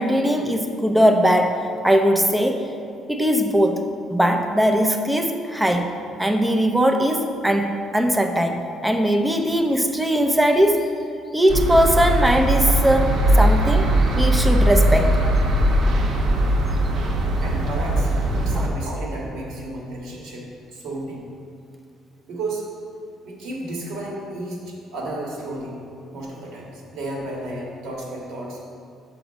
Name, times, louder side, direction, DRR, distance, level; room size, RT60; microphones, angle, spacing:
voice 1, 0.0-2.7 3.1-5.9 6.2-10.9 11.3-15.2 18.5-18.7, equal, 5° right, 4 dB, 0.5 m, -20 dB
sound 1, 11.5-18.7, right 1 dB, 50° right, 0.8 m, -19 dB
voice 2, 17.4-20.5 20.7-21.3 22.3-22.7 23.2-25.8 26.1-28.6, right 2 dB, 75° right, -2 dB, 1.8 m, -32 dB
5.9 x 5.1 x 6.1 m, 2.4 s
cardioid pair, 145°, 0 cm